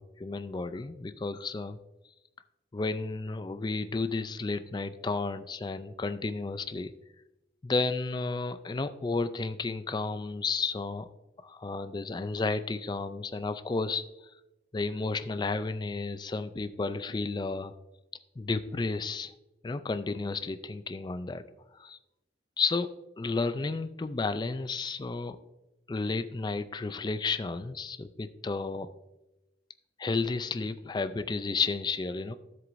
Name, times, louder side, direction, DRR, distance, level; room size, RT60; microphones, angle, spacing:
voice 1, 0.0-1.8 2.7-6.9 7.6-11.1 11.4-14.0 14.7-17.7 18.4-19.3 19.6-21.4 21.7-22.0 22.6-25.4 25.9-28.9 30.0-32.3, left 3 dB, 25° left, 11 dB, 0.4 m, -32 dB
13.0 x 7.7 x 2.6 m, 0.97 s
head